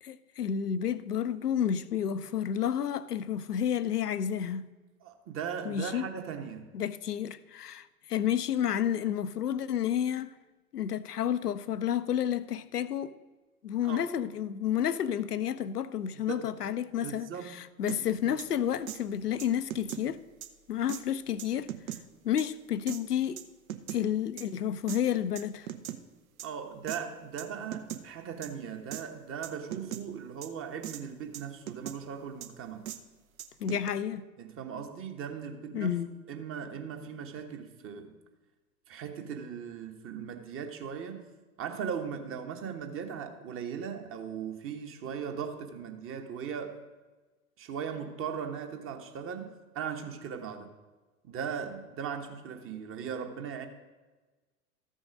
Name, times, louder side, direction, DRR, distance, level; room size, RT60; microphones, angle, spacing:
voice 1, 0.0-4.7 5.6-6.1 6.7-10.3 10.7-13.1 13.6-20.2 20.7-21.7 22.2-23.4 23.9-25.7 33.6-34.2 35.7-36.1, left 9 dB, 85° left, 0.6 m, -30 dB
voice 2, 5.0-6.7 13.8-14.1 16.1-16.5 17.0-17.6 17.9-18.4 26.4-32.9 34.4-36.0 36.3-38.2 38.9-41.3 41.6-46.8 47.6-50.7 51.2-53.7, right 7 dB, 30° right, 1.1 m, -38 dB
sound 1, 17.9-18.0 18.4-18.5 18.9-19.0 19.4-20.0 20.4-20.5 20.9-21.0 21.4-22.0 22.4-22.5 22.9-23.0 23.4-24.0 24.4-24.5 24.9-25.0 25.4-26.0 26.4-26.5 26.9-27.0 27.4-27.5 27.7-28.0 28.4-28.5 28.9-29.0 29.4-30.0 30.4-30.5 30.8-31.0 31.3-32.0 32.4-32.5 32.9-33.0 33.4-33.9, right 12 dB, 65° right, 0.8 m, -39 dB
13.5 x 6.3 x 5.2 m
figure-of-eight pair, 90°, 45 cm